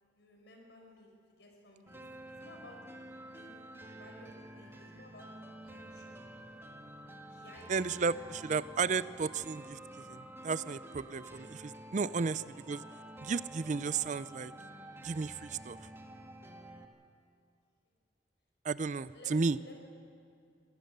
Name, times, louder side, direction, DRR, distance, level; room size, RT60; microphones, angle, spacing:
voice 1, 0.2-1.1 1.4-3.0 3.3-6.2 7.1-8.3 19.1-19.7, left 1 dB, 80° left, 1 dB, 5.0 m, -56 dB
sound 1, 1.9-16.8, right 1 dB, 15° right, 1.5 m, -50 dB
voice 2, 7.7-9.8 10.1-12.8 13.2-14.5 15.0-15.8 18.6-19.6, right 4 dB, 45° right, 17 dB, 0.4 m, -33 dB
26.5 x 17.0 x 6.7 m, 2.4 s
head